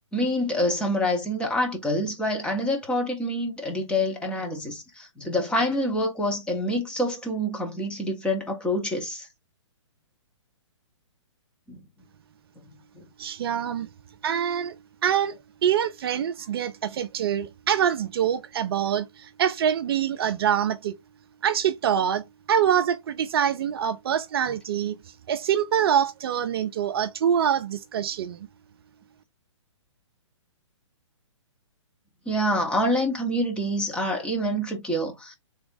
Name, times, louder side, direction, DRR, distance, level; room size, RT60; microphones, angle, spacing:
voice 1, 0.1-9.3 11.7-11.8 13.0-13.1 32.3-35.3, equal, 5° left, 0.8 m, -26 dB
voice 2, 13.2-13.9 14.2-14.7 15.0-15.4 15.6-20.9 21.4-25.0 25.3-28.4, right 9 dB, 50° right, 0.4 m, -25 dB
3.4 x 2.5 x 3.6 m
hypercardioid pair, 135°, 16 cm